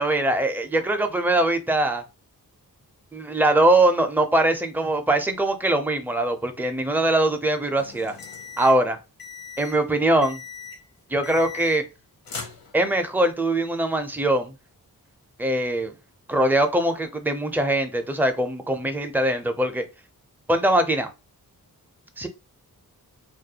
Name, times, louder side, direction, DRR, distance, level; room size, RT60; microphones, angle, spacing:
voice 1, 0.0-2.0 3.1-8.2 8.6-9.0 9.6-10.4 11.1-11.8 12.7-14.5 15.4-15.9 16.3-19.8 20.5-21.1 22.2-22.3, right 1 dB, 5° right, 0.4 m, -22 dB
sound 1, 7.8-8.8 9.2-9.8 10.2-10.8 11.2-12.0 12.3-13.1, left 5 dB, 65° left, 0.7 m, -39 dB
2.4 x 2.2 x 2.7 m
wide cardioid pair, 70°, 37 cm